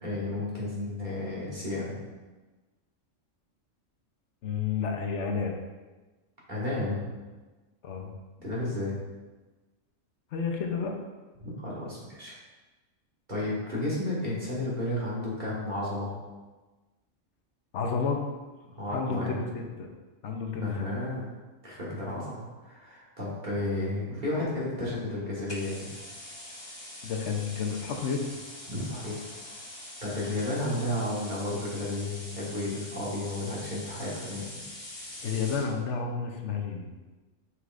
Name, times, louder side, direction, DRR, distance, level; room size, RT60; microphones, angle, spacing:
voice 1, 0.0-2.0 6.5-7.2 8.4-8.9 11.4-12.4 13.3-16.2 18.8-19.4 20.6-21.3 21.6-25.9 28.7-29.3 30.0-34.4, left 1 dB, 35° right, -6 dB, 1.7 m, -32 dB
voice 2, 4.4-5.6 7.8-8.1 10.3-11.0 17.7-18.2 18.9-19.9 20.2-20.9 27.0-28.3 35.2-37.2, left 5 dB, 65° left, 3 dB, 1.0 m, -31 dB
sound 1, 25.5-35.7, left 1 dB, 25° left, 0.7 m, -44 dB
6.3 x 6.2 x 2.5 m, 1.2 s
omnidirectional pair, 1.4 m